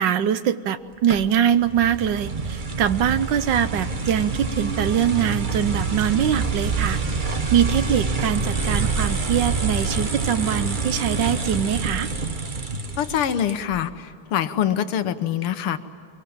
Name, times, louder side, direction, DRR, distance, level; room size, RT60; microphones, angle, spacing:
voice 1, 0.0-7.0 7.5-12.1, right 9 dB, 65° right, 13 dB, 1.3 m, -23 dB
sound 1, 1.1-13.8, right 4 dB, 30° right, 1.0 m, -27 dB
voice 2, 13.0-15.8, left 9 dB, 80° left, 10 dB, 1.9 m, -24 dB
23.5 x 23.0 x 8.8 m, 2.3 s
omnidirectional pair, 2.4 m